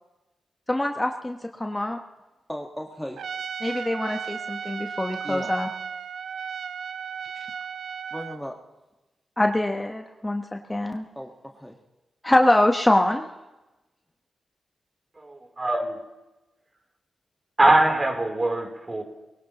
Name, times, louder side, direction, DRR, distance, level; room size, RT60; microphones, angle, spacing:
voice 1, 0.7-2.0 3.6-5.7 9.4-11.1 12.2-13.2, left 1 dB, 15° left, 4 dB, 1.2 m, -24 dB
voice 2, 2.5-3.2 5.2-5.5 8.1-8.5 11.1-11.8, equal, ahead, 1 dB, 1.6 m, -36 dB
Trumpet, 3.2-8.4, right 7 dB, 75° right, 0.5 m, -35 dB
voice 3, 15.1-16.0 17.6-19.0, right 2 dB, 30° right, 3 dB, 3.5 m, -22 dB
21.5 x 18.0 x 3.0 m, 1.1 s
supercardioid pair, 45°, 0 cm